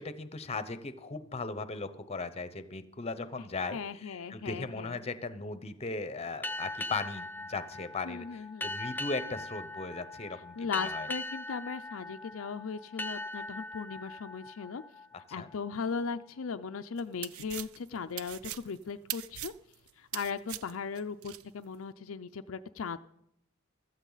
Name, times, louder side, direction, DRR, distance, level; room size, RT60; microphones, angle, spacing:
voice 1, 0.0-11.1 15.4-15.5, left 3 dB, 30° left, 12 dB, 0.8 m, -38 dB
voice 2, 3.7-5.0 8.0-8.7 10.6-14.8 15.3-19.5 20.0-23.0, left 5 dB, 70° left, 8 dB, 0.5 m, -38 dB
sound 1, 6.4-15.7, left 2 dB, 10° left, 0.5 m, -40 dB
Peeling Carrots, 17.0-21.4, right 14 dB, 85° right, 0.5 m, -41 dB
15.5 x 13.5 x 4.0 m, 0.76 s
head